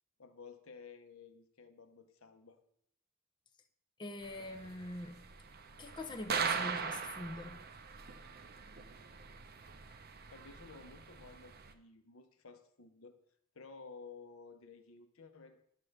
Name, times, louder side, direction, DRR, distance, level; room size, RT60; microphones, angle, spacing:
voice 1, 0.2-2.6 9.9-13.2 13.5-15.6, left 4 dB, 70° left, 0.9 m, -54 dB
voice 2, 4.0-5.2 5.8-7.6, left 2 dB, 20° left, 0.6 m, -43 dB
sound 1, 4.2-11.7, right 6 dB, 45° right, 0.7 m, -41 dB
11.0 x 3.7 x 6.5 m
head